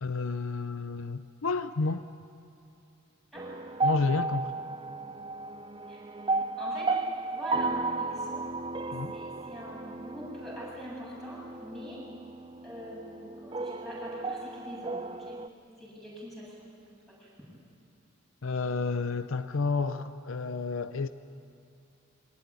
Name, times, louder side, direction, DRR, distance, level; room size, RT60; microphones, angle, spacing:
voice 1, 0.0-2.1 3.8-4.5 8.9-9.2 18.4-21.1, left 4 dB, 70° left, 12 dB, 0.6 m, -30 dB
sound 1, 3.4-15.5, right 3 dB, 25° right, 0.5 m, -34 dB
voice 2, 6.6-7.0 7.3-8.5 9.1-12.0 12.6-15.4 15.8-17.5, equal, ahead, -6 dB, 8.0 m, -43 dB
22.5 x 19.0 x 9.8 m, 2.6 s
head